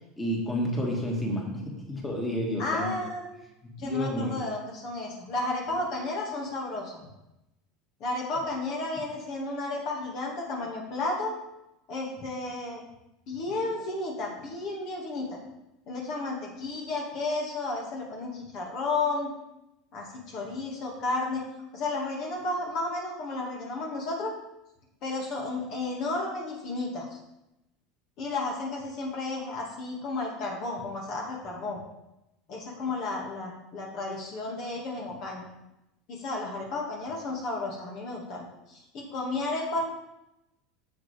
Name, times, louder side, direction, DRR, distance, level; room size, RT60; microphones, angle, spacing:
voice 1, 0.2-2.9 3.8-4.4, equal, 20° left, -1 dB, 2.3 m, -30 dB
voice 2, 2.6-3.3 3.8-7.1 8.0-11.3 11.9-12.8 13.3-15.4 15.9-19.3 19.9-21.4 21.7-24.4 25.0-27.2 28.2-31.8 32.5-35.5 36.1-39.8, left 2 dB, 55° left, -1 dB, 2.1 m, -32 dB
8.7 x 7.1 x 3.5 m, 0.91 s
hypercardioid pair, 85°, 0 cm